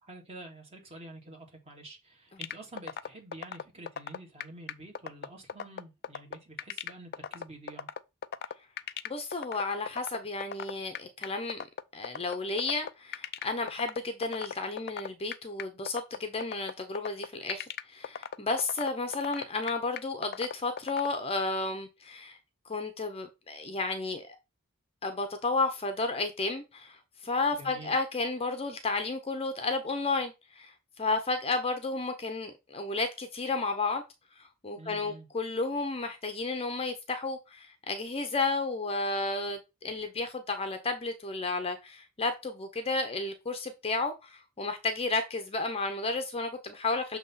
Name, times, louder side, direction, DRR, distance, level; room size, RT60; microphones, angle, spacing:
voice 1, 0.0-7.9 27.5-27.9 34.8-35.3, right 1 dB, 30° right, 2.1 m, -48 dB
sound 1, 2.4-21.1, left 8 dB, 50° left, 0.4 m, -36 dB
voice 2, 9.0-11.6 11.9-22.4 22.7-24.4 25.0-27.0 27.2-34.0 34.4-47.2, left 3 dB, 25° left, 0.8 m, -32 dB
7.0 x 3.0 x 5.6 m
head